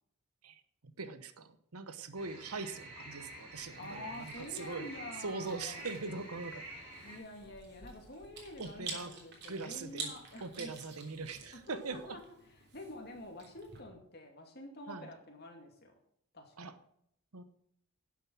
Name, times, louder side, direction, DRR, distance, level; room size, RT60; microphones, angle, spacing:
voice 1, 1.0-4.9 5.2-6.7 8.6-9.1 9.5-10.1 10.4-12.0 14.9-15.1 16.6-16.7 17.3-17.4, right 4 dB, 90° right, 11 dB, 1.0 m, -41 dB
sound 1, 2.1-7.2, right 1 dB, 25° right, 4.5 m, -48 dB
Chewing mastication, 3.6-13.8, right 4 dB, 50° right, 3.3 m, -49 dB
voice 2, 3.8-5.8 7.0-10.7 11.5-15.9 16.3-16.7, left 1 dB, 45° left, 3 dB, 2.4 m, -48 dB
11.5 x 7.6 x 6.2 m, 0.72 s
head